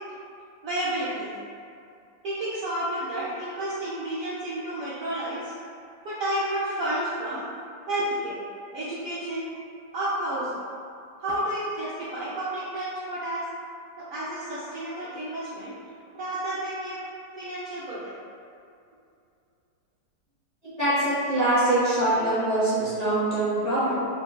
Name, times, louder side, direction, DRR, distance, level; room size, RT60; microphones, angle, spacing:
voice 1, 0.6-1.3 2.2-5.5 6.0-7.4 7.9-8.4 8.7-9.5 9.9-10.6 11.2-13.4 14.0-15.8 16.1-17.0 17.4-18.2, right 1 dB, 85° right, -9 dB, 0.7 m, -31 dB
voice 2, 20.6-24.1, right 1 dB, 30° left, -13 dB, 0.9 m, -24 dB
3.8 x 2.1 x 2.2 m, 2.5 s
omnidirectional pair, 2.0 m